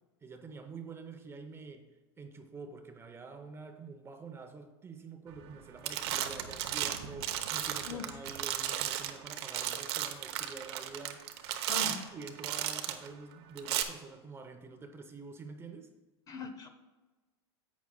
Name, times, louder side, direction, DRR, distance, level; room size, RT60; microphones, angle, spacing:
voice 1, 0.2-1.9 2.2-15.9, right 4 dB, 15° right, 7 dB, 0.7 m, -47 dB
sound 1, 5.3-5.6 5.8-13.1 13.6-13.8, right 11 dB, 65° right, 0.8 m, -35 dB
voice 2, 11.7-12.0 16.3-16.7, left 4 dB, 25° left, 8 dB, 0.6 m, -40 dB
11.0 x 8.2 x 2.2 m, 1.2 s
supercardioid pair, 125°, 14 cm